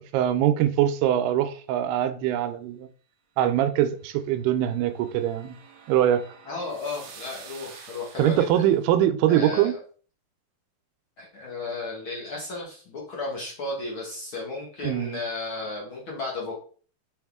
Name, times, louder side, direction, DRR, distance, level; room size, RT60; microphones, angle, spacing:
voice 1, 0.0-2.9 3.4-5.6 5.9-6.2 8.2-9.7 14.8-15.2, right 11 dB, 85° right, 2.6 m, -23 dB
sound 1, 4.2-8.8, right 6 dB, 65° right, 1.9 m, -48 dB
voice 2, 6.4-8.6 9.3-9.8 11.2-16.6, left 3 dB, 80° left, 1.1 m, -34 dB
6.2 x 5.3 x 3.6 m
omnidirectional pair, 4.6 m